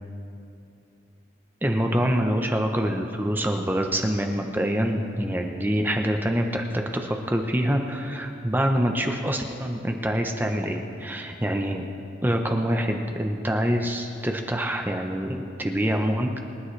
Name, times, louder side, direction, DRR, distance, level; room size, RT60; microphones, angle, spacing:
voice 1, 1.6-11.9 12.2-16.4, equal, 10° right, 3 dB, 0.8 m, -25 dB
25.0 x 11.0 x 3.3 m, 2.6 s
head